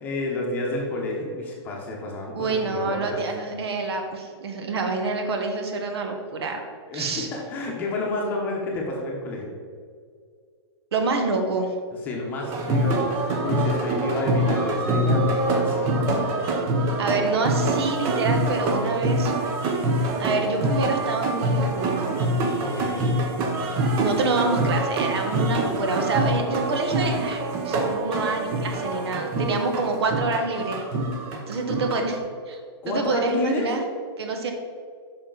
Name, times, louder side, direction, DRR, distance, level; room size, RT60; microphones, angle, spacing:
voice 1, 0.0-3.3 6.9-9.5 12.0-16.2 22.6-23.1 32.8-33.7, left 2 dB, 15° left, -2 dB, 1.0 m, -30 dB
voice 2, 2.3-6.6 6.9-7.3 10.9-11.7 17.0-19.3 20.2-22.1 24.0-30.8 31.5-32.2 32.5-33.8 34.2-34.5, right 3 dB, 70° right, 4 dB, 1.4 m, -27 dB
sound 1, 12.5-32.2, right 1 dB, 20° right, 0.6 m, -25 dB
8.7 x 5.8 x 4.0 m, 2.1 s
hypercardioid pair, 175°, 14 cm